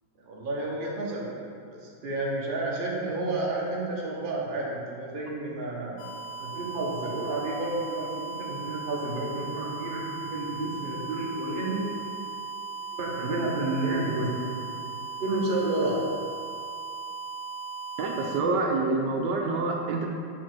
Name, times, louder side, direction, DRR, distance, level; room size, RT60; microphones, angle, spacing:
voice 1, 0.3-1.3 1.7-5.9 6.4-11.8 12.9-14.3 15.2-16.0, right 2 dB, 35° right, -4 dB, 1.0 m, -30 dB
sound 1, 6.0-18.4, right 5 dB, 90° left, 1.5 m, -37 dB
voice 2, 18.0-20.1, right 3 dB, 75° right, 1 dB, 1.2 m, -27 dB
4.9 x 4.4 x 6.0 m, 2.4 s
omnidirectional pair, 2.0 m